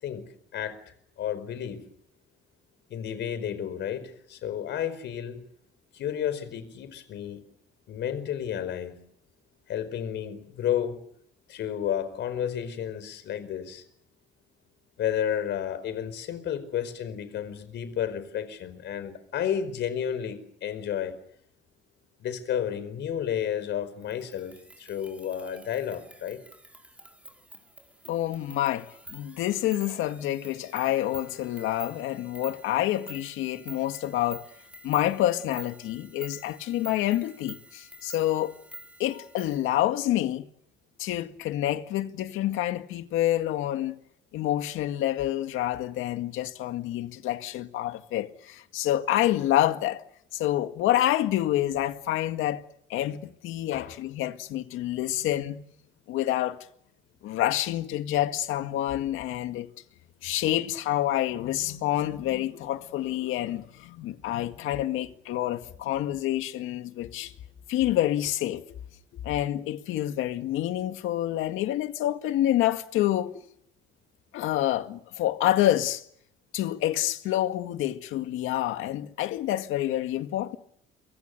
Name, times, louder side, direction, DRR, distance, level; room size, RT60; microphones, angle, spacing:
voice 1, 0.0-1.8 2.9-5.4 5.9-7.4 7.9-9.0 9.7-11.0 11.5-13.8 15.0-21.2 22.2-26.4 39.1-39.2 53.7-54.0 63.2-63.3 66.9-67.3 69.1-69.2, left 9 dB, 65° left, 4.9 m, -32 dB
sound 1, 24.0-39.7, right 1 dB, 5° right, 4.7 m, -49 dB
voice 2, 28.1-34.5 34.8-38.5 39.0-40.4 41.0-44.0 44.3-50.0 50.3-52.6 52.9-55.6 56.1-56.7 57.2-59.7 60.2-67.3 67.7-68.6 69.2-73.3 74.3-76.0 76.5-80.6, left 13 dB, 85° left, 2.0 m, -27 dB
28.5 x 24.0 x 6.7 m
cardioid pair, 145°, 20 cm